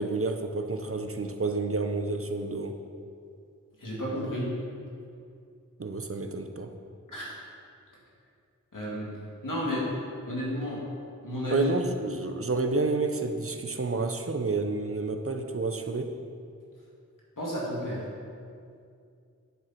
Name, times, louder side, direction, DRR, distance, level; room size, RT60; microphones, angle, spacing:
voice 1, 0.0-2.8 5.8-6.7 11.5-16.2, right 3 dB, 45° right, 5 dB, 0.7 m, -29 dB
voice 2, 3.8-4.5 7.1-7.3 8.7-9.1 9.4-9.9 10.3-10.8 11.2-11.7 17.4-18.0, equal, 85° left, -6 dB, 2.6 m, -31 dB
9.5 x 7.8 x 4.5 m, 2.4 s
wide cardioid pair, 65°, 31 cm